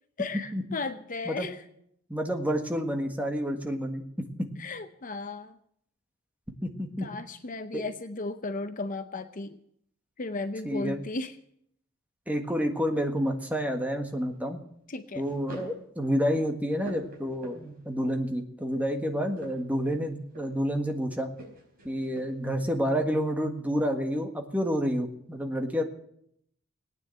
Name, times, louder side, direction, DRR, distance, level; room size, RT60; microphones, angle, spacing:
voice 1, 0.2-1.6 4.6-5.6 7.0-9.6 10.2-11.3 14.9-15.2, left 3 dB, 40° left, 10 dB, 0.7 m, -35 dB
voice 2, 2.1-4.0 4.4-4.5 6.6-7.1 7.7-7.8 10.6-11.0 12.3-14.6 15.1-21.3 21.8-25.8, equal, 5° right, 4 dB, 1.6 m, -29 dB
sound 1, 14.0-14.4 15.2-15.8 16.3-17.9 19.2-20.7 21.3-22.5, right 1 dB, 45° right, 4.9 m, -47 dB
18.0 x 9.6 x 7.8 m, 0.72 s
head